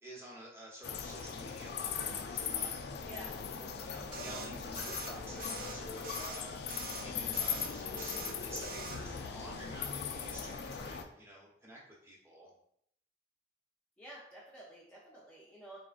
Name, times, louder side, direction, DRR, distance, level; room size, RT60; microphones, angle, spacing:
voice 1, 0.0-2.8 3.1-6.6 6.9-12.5, right 1 dB, 15° right, -5 dB, 0.9 m, -50 dB
sound 1, 0.8-11.0, left 6 dB, 55° left, 0.4 m, -39 dB
sound 2, 4.1-4.5 4.8-5.1 5.4-5.8 6.0-6.4 6.7-7.0 7.3-7.7 8.0-8.3 8.6-9.0, right 5 dB, 50° right, 0.4 m, -44 dB
voice 2, 14.0-15.8, right 1 dB, 5° left, -7 dB, 0.6 m, -51 dB
4.1 x 3.5 x 2.4 m, 0.71 s
head